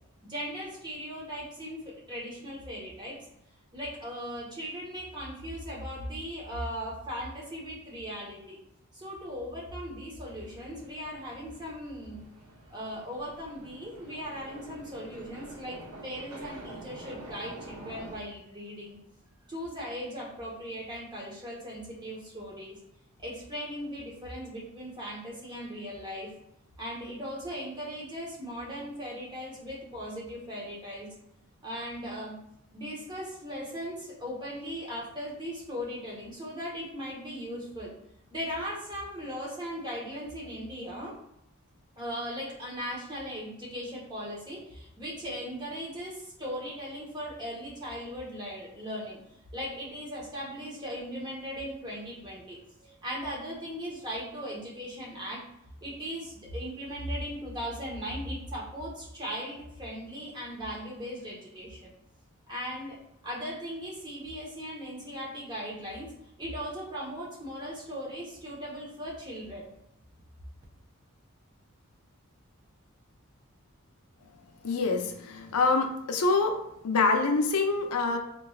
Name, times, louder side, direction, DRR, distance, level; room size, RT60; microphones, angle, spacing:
voice 1, 0.2-3.2 3.7-8.6 8.9-12.2 12.7-19.0 19.5-22.8 23.2-26.3 26.8-31.1 31.6-32.4 32.7-37.9 38.3-41.2 42.0-49.2 49.5-55.4 55.8-61.9 62.5-63.0 63.2-66.1 66.4-69.7, equal, 20° right, -5 dB, 1.1 m, -38 dB
sound 1, 10.3-18.1, right 1 dB, 85° right, 0.8 m, -47 dB
voice 2, 74.6-76.6 76.8-78.2, left 3 dB, 85° left, 5 dB, 0.6 m, -25 dB
4.6 x 3.1 x 2.4 m, 0.79 s
head